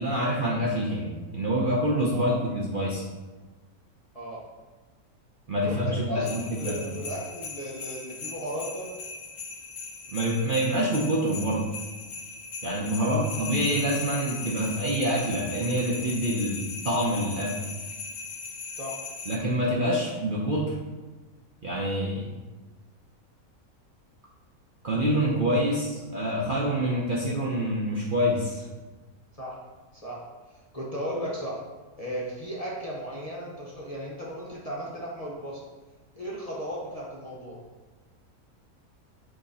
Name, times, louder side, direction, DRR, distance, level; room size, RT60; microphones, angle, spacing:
voice 1, 0.0-3.0 5.5-7.0 10.1-11.7 12.6-17.6 19.3-20.8 21.6-22.4 24.8-28.6, equal, 50° right, -4 dB, 0.7 m, -26 dB
voice 2, 5.6-8.9 13.0-13.2 18.8-19.0 29.4-29.6 29.9-31.6 32.0-35.6 36.1-37.6, equal, 30° left, -5 dB, 0.8 m, -36 dB
sound 1, 6.2-19.4, left 4 dB, 60° left, 0.9 m, -38 dB
7.9 x 2.9 x 4.1 m, 1.3 s
omnidirectional pair, 1.6 m